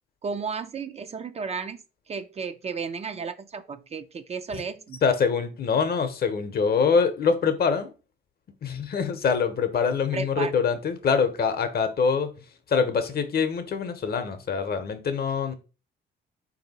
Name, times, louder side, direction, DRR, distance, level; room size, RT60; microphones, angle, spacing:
voice 1, 0.2-1.8 2.1-5.0 10.1-10.5, right 5 dB, 35° right, 0.4 m, -33 dB
voice 2, 5.0-7.9 8.6-12.3 12.7-15.5, left 5 dB, 50° left, 0.7 m, -24 dB
3.5 x 2.7 x 4.0 m
cardioid pair, 90°, 20 cm